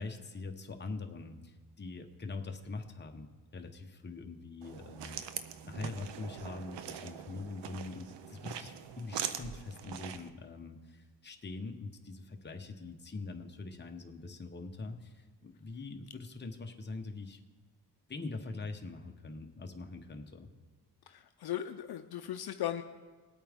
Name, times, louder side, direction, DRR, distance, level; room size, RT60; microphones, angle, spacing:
voice 1, 0.0-5.2 5.6-17.4 18.1-20.5, left 3 dB, 25° left, 4 dB, 1.0 m, -43 dB
sound 1, 4.6-10.3, right 9 dB, 80° right, 0.7 m, -42 dB
voice 2, 21.1-22.8, left 11 dB, 65° left, 8 dB, 0.6 m, -37 dB
20.0 x 8.6 x 3.6 m, 1.3 s
cardioid pair, 110°, 42 cm